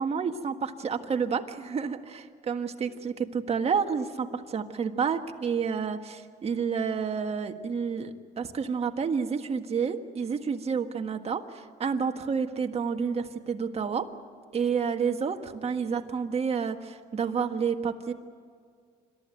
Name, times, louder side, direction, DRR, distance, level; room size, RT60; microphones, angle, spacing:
voice 1, 0.0-14.1 14.5-18.1, right 6 dB, 35° right, 6 dB, 1.6 m, -29 dB
26.5 x 14.0 x 9.2 m, 2.2 s
cardioid pair, 110°, 17 cm